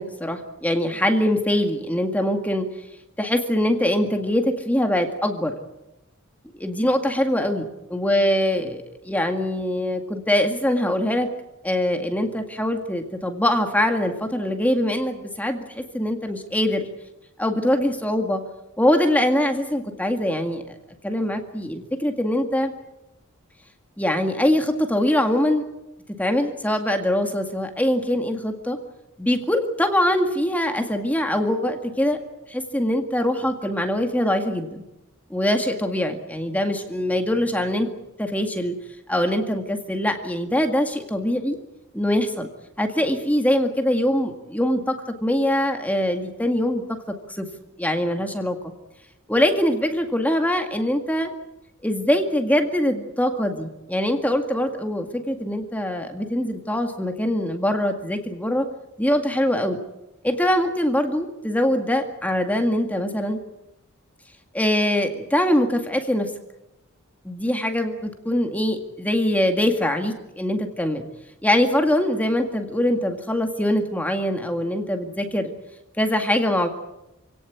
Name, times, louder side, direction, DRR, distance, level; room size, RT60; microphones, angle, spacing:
voice 1, 0.0-2.7 3.2-5.6 6.6-11.3 11.6-16.9 17.4-18.4 18.8-20.6 21.0-22.7 24.0-25.6 26.2-28.8 29.2-32.2 32.5-34.8 35.3-37.9 38.2-38.8 39.1-41.6 41.9-42.5 42.8-46.8 47.3-47.5 47.8-48.6 49.3-51.3 51.8-58.7 59.0-59.8 60.2-63.4 64.5-66.3 67.2-71.0 71.4-75.5 76.0-76.7, left 1 dB, 5° left, 5 dB, 2.0 m, -23 dB
27.5 x 17.5 x 8.5 m, 0.93 s
head